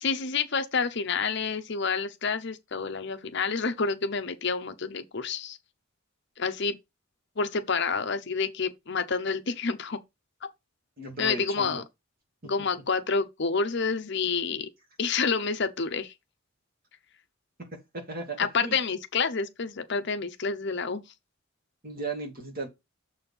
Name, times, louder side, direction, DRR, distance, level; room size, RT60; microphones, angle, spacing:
voice 1, 0.0-5.6 6.4-6.8 7.4-10.0 11.2-11.8 12.4-14.7 15.0-16.1 18.4-21.0, left 5 dB, 55° left, 0.8 m, -28 dB
voice 2, 11.0-11.8 12.4-12.5 17.9-18.8 21.8-22.7, right 2 dB, 45° right, 2.3 m, -36 dB
6.8 x 4.3 x 5.4 m
head